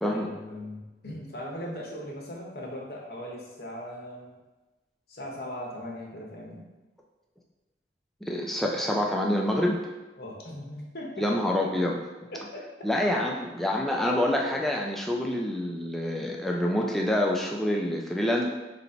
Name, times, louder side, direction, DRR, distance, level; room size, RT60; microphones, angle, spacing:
voice 1, 0.0-4.4 5.1-6.6 10.2-11.3 12.3-12.6, left 1 dB, 60° left, -2 dB, 0.8 m, -39 dB
voice 2, 8.2-9.8 11.2-12.0 12.8-18.5, left 1 dB, ahead, -1 dB, 0.3 m, -27 dB
2.9 x 2.6 x 4.3 m, 1.1 s
head